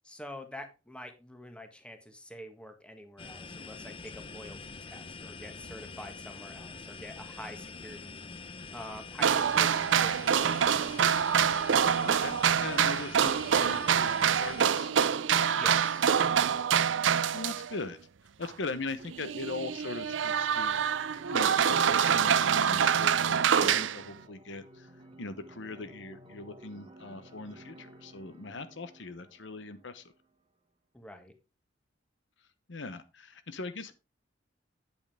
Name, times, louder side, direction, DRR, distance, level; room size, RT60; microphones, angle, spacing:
voice 1, 0.0-11.0 15.5-16.1 30.9-31.3, equal, 5° left, 6 dB, 1.5 m, -46 dB
sound 1, 3.2-14.7, left 4 dB, 30° left, 0.6 m, -45 dB
sound 2, 9.2-17.8 18.4-18.5 19.0-24.0, right 8 dB, 75° right, 0.5 m, -26 dB
voice 2, 12.0-14.9 17.3-18.0 18.4-20.8 21.3-24.9 25.2-30.0 32.7-33.9, left 3 dB, 70° left, 11 dB, 1.0 m, -40 dB
sound 3, 19.2-30.3, right 1 dB, 30° right, 1.4 m, -55 dB
9.1 x 8.5 x 3.5 m, 0.27 s
head